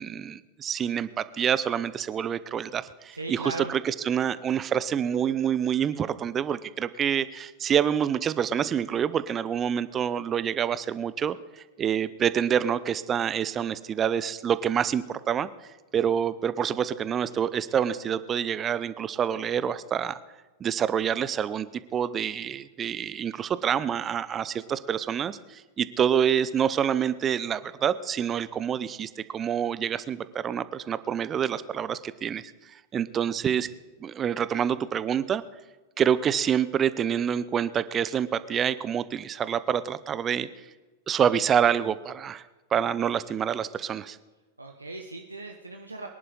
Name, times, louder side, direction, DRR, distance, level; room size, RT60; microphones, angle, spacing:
voice 1, 0.0-15.5 15.9-20.2 20.6-32.4 32.9-33.7 34.0-35.4 36.0-40.5 41.1-42.4 42.7-44.2, right 8 dB, 25° right, 16 dB, 0.7 m, -27 dB
voice 2, 3.2-3.7 44.6-46.1, right 2 dB, 80° right, 2 dB, 1.1 m, -37 dB
23.5 x 11.0 x 4.1 m, 1.2 s
figure-of-eight pair, 90°, 0 cm